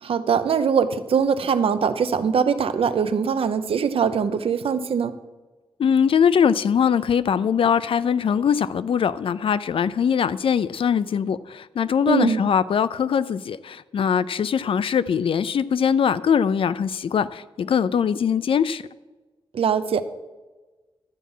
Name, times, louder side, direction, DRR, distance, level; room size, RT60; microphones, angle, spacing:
voice 1, 0.0-5.2 12.1-12.4 19.5-20.0, right 6 dB, 75° right, 12 dB, 0.7 m, -22 dB
voice 2, 5.8-18.8, left 7 dB, 70° left, 16 dB, 0.4 m, -22 dB
12.0 x 8.4 x 5.5 m, 1.2 s
wide cardioid pair, 140°, 10 cm